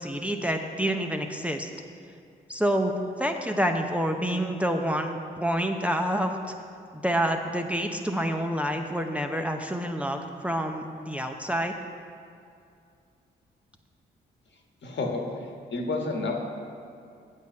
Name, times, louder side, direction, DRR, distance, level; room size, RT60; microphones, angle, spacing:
voice 1, 0.0-1.7 2.5-2.9 3.2-6.4 6.9-11.7, equal, 5° right, 3 dB, 0.7 m, -28 dB
voice 2, 14.8-16.4, left 3 dB, 60° left, 1 dB, 1.4 m, -30 dB
8.3 x 6.9 x 5.4 m, 2.4 s
supercardioid pair, 50°, 21 cm